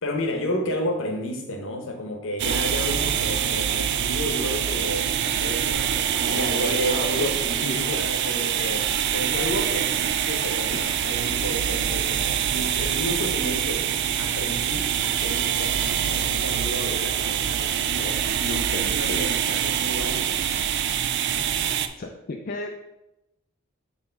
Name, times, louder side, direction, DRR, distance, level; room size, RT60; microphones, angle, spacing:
voice 1, 0.0-8.8 9.1-13.9 14.2-18.0 18.7-20.4, equal, 60° left, 4 dB, 1.1 m, -31 dB
sound 1, 2.4-21.9, right 9 dB, 55° right, 0.4 m, -25 dB
voice 2, 6.3-8.5 10.7-10.8 17.8-18.1 18.4-19.3 19.8-19.9 21.4-21.7 22.0-22.8, left 3 dB, 45° left, 1 dB, 0.5 m, -35 dB
4.4 x 4.3 x 5.7 m, 0.92 s
head